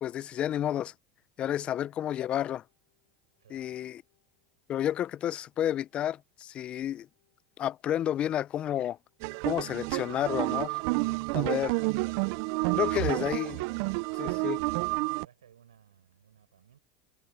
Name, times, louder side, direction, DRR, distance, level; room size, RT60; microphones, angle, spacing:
voice 1, 0.0-0.9 1.4-2.6 3.5-4.0 4.7-7.1 7.6-9.0 9.4-10.8 11.3-11.8 12.7-13.6 14.2-14.6, left 11 dB, 40° left, 0.6 m, -31 dB
voice 2, 1.5-1.9 3.4-3.9 14.9-16.8, right 9 dB, 90° right, 7.2 m, -61 dB
sound 1, 1.8-13.7, left 19 dB, 70° left, 6.8 m, -80 dB
sound 2, 9.2-15.2, right 29 dB, 65° right, 0.5 m, -30 dB
hypercardioid pair, 85°, 3 cm